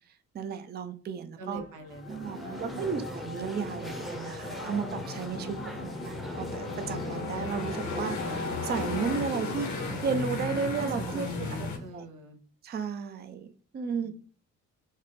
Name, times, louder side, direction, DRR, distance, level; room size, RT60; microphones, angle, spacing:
voice 1, 0.3-1.6 2.1-5.6 6.0-11.3 11.9-12.0 12.6-13.5 13.7-14.1, right 6 dB, 35° right, 9 dB, 0.4 m, -33 dB
voice 2, 1.4-3.1 5.2-6.0 10.8-12.4 14.0-14.1, right 3 dB, 85° right, 5 dB, 0.8 m, -44 dB
sound 1, 1.5-9.6, left 5 dB, 50° left, 0.5 m, -44 dB
sound 2, 1.9-11.9, equal, ahead, 0.7 m, -41 dB
sound 3, 3.4-11.8, left 3 dB, 70° left, 1.1 m, -36 dB
4.0 x 2.0 x 3.4 m, 0.41 s
cardioid pair, 90°, 30 cm